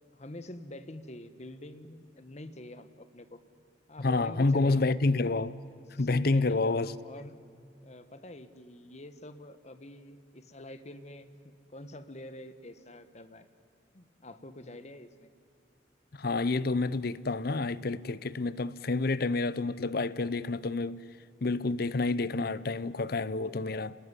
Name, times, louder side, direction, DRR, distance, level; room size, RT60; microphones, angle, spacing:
voice 1, 0.1-3.4 3.9-4.8 5.7-7.3 7.8-13.5 13.9-15.3, left 1 dB, 40° left, 1.3 m, -46 dB
voice 2, 4.0-5.5 6.0-6.9 16.2-21.0 21.4-24.0, left 3 dB, 55° left, 0.7 m, -28 dB
29.0 x 20.0 x 9.8 m
head